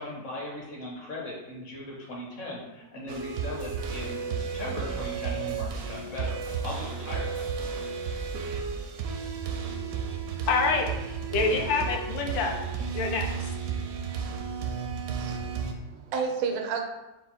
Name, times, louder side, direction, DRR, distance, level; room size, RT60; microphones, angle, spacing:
voice 1, 0.0-7.7, left 2 dB, 50° left, -3 dB, 1.1 m, -38 dB
sound 1, 3.1-15.7, right 6 dB, 70° right, 0.9 m, -33 dB
voice 2, 10.5-10.9 11.3-12.5 12.9-13.5, left 4 dB, 85° left, 2 dB, 1.4 m, -26 dB
voice 3, 15.2-16.8, right 5 dB, 90° right, 4 dB, 1.3 m, -31 dB
4.3 x 2.4 x 4.1 m, 1.0 s
omnidirectional pair, 2.0 m